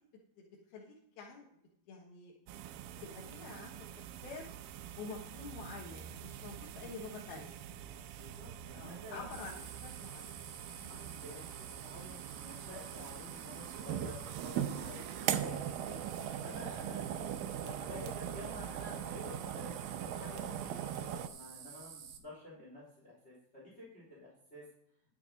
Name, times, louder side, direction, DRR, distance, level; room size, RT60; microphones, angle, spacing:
voice 1, 0.4-1.5 1.9-2.3 3.0-4.5 5.0-7.6 8.7-9.5 9.8-10.3 10.8-11.0, left 4 dB, 85° left, -2 dB, 3.2 m, -48 dB
sound 1, 2.5-21.3, right 10 dB, 85° right, 2.4 m, -41 dB
voice 2, 6.7-7.1 8.2-9.2 10.9-15.6 15.9-16.0 16.4-24.6, left 2 dB, 15° left, -5 dB, 3.7 m, -50 dB
sound 2, 9.3-22.2, right 7 dB, 65° right, 2.1 m, -51 dB
12.5 x 7.5 x 5.1 m, 0.75 s
omnidirectional pair, 4.2 m